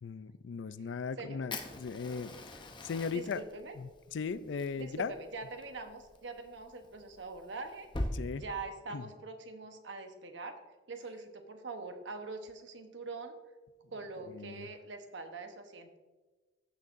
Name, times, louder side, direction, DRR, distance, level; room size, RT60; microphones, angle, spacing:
voice 1, 0.0-3.4 3.8-5.1 8.1-8.4 8.9-9.0 14.3-14.7, left 5 dB, 80° left, 16 dB, 0.4 m, -38 dB
Fire, 1.5-8.1, left 1 dB, 25° left, 0.7 m, -43 dB
voice 2, 3.1-3.8 4.8-10.5 10.9-13.3 13.9-16.0, right 3 dB, 80° right, 6 dB, 1.0 m, -44 dB
14.5 x 6.5 x 2.6 m, 1.2 s
head